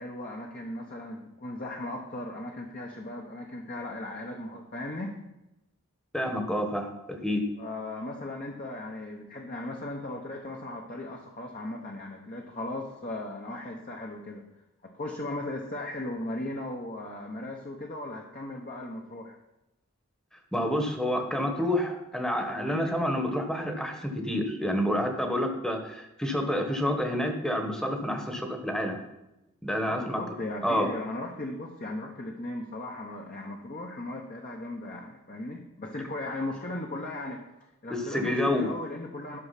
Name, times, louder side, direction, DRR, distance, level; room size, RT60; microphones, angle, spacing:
voice 1, 0.0-5.1 7.6-14.5 14.8-19.4 29.8-39.4, left 1 dB, 40° left, 0 dB, 0.9 m, -37 dB
voice 2, 6.1-7.4 20.5-29.0 29.6-30.2 30.6-30.9 37.9-38.7, left 1 dB, 5° left, 4 dB, 1.1 m, -28 dB
11.5 x 6.1 x 5.8 m, 0.93 s
head